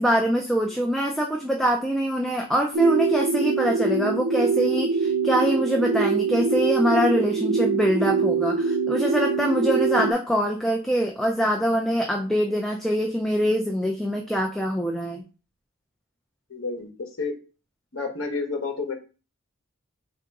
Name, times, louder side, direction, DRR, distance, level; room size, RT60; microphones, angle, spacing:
voice 1, 0.0-15.2, equal, ahead, 1 dB, 0.3 m, -24 dB
sound 1, 2.7-10.1, right 5 dB, 80° right, 0.5 m, -24 dB
voice 2, 16.5-16.9 17.2-17.3 17.9-18.9, left 4 dB, 70° left, 3 dB, 1.1 m, -30 dB
3.7 x 2.5 x 4.5 m, 0.34 s
head